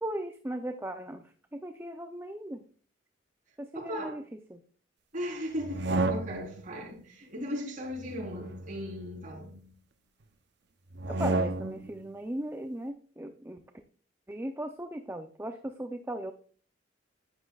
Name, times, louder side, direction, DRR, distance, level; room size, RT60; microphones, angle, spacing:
voice 1, 0.0-1.2 1.5-2.6 3.6-4.2 4.5-4.6 11.1-13.6 14.3-16.3, right 1 dB, 15° right, 0.6 m, -37 dB
voice 2, 3.7-4.2 5.1-9.5, equal, 45° right, 4.0 m, -37 dB
sound 1, 5.6-6.7 8.0-9.6 10.9-11.9, right 2 dB, 60° right, 0.8 m, -32 dB
11.5 x 9.6 x 2.4 m
head